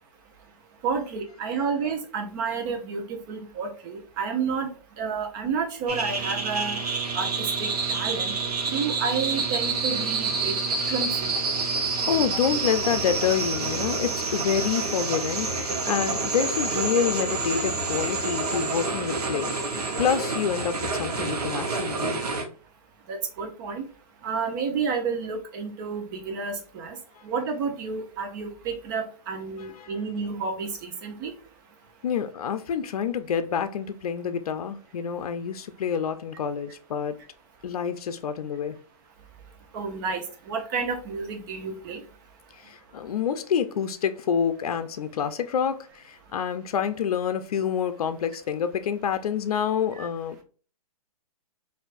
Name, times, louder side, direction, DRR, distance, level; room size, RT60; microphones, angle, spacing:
voice 1, 0.8-4.7 5.0-6.8 7.1-8.3 8.7-10.5 10.9-11.3 23.1-23.8 24.2-27.0 27.2-31.3 39.7-40.2 40.5-42.0 50.0-50.1, right 5 dB, 30° right, 0.8 m, -30 dB
sound 1, 5.9-22.4, right 4 dB, 90° right, 1.0 m, -28 dB
voice 2, 12.1-22.3 29.6-29.9 32.0-37.1 37.6-38.8 42.5-50.4, left 7 dB, 75° left, 0.5 m, -28 dB
4.3 x 2.6 x 2.5 m
hypercardioid pair, 155°, 19 cm